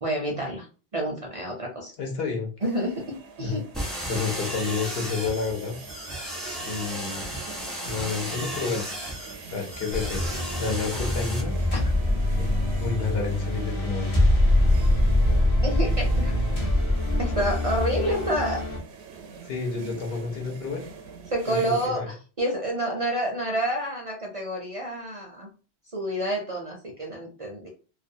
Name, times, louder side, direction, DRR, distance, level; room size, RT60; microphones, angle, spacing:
voice 1, 0.0-0.7 0.9-1.9 2.6-3.6 11.7-11.8 15.6-16.3 17.2-18.6 21.3-25.5 25.9-27.7, right 1 dB, 45° right, 0 dB, 0.5 m, -28 dB
voice 2, 2.0-2.5 3.4-3.6 4.1-5.7 6.6-7.3 7.8-9.0 9.5-11.5 12.4-14.2 19.4-20.9 21.5-22.1, left 5 dB, 65° left, 2 dB, 0.9 m, -30 dB
sound 1, 2.6-21.9, right 5 dB, 80° right, 0.8 m, -44 dB
sound 2, 3.7-11.4, equal, ahead, 0.6 m, -34 dB
sound 3, 9.9-18.8, left 1 dB, 40° left, 0.7 m, -24 dB
2.4 x 2.3 x 2.6 m, 0.36 s
omnidirectional pair, 1.1 m